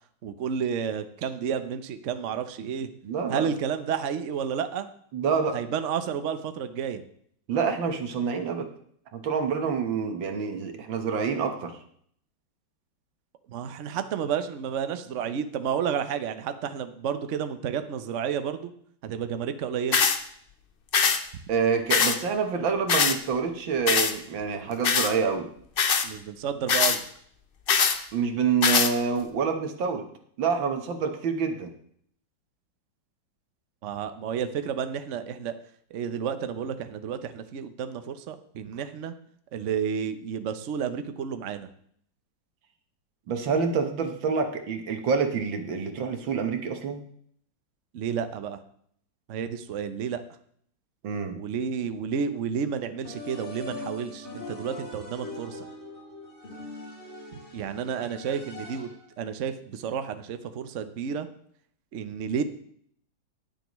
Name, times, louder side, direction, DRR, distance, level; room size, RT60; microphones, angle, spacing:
voice 1, 0.2-2.9 3.3-4.9 5.5-7.0 13.5-18.7 19.0-20.0 26.0-27.0 33.8-35.5 35.9-39.1 39.5-41.7 47.9-48.6 49.3-50.2 51.3-55.7 57.3-61.3 61.9-62.4, right 7 dB, 55° right, 9 dB, 0.8 m, -31 dB
voice 2, 3.0-3.5 5.1-5.6 7.5-8.7 9.1-11.7 21.5-25.5 28.1-30.1 30.4-31.7 43.3-47.0 51.0-51.4, right 5 dB, 80° right, 6 dB, 2.0 m, -27 dB
sound 1, 19.9-20.2 20.9-21.2 21.9-22.2 22.9-23.2 23.9-24.1 24.8-25.1 25.8-26.1 26.7-27.0 27.7-28.0 28.6-28.9, left 6 dB, 80° left, 0.5 m, -22 dB
sound 2, 53.0-59.1, left 2 dB, 35° left, 3.7 m, -41 dB
21.0 x 7.0 x 3.1 m, 0.63 s
omnidirectional pair, 2.1 m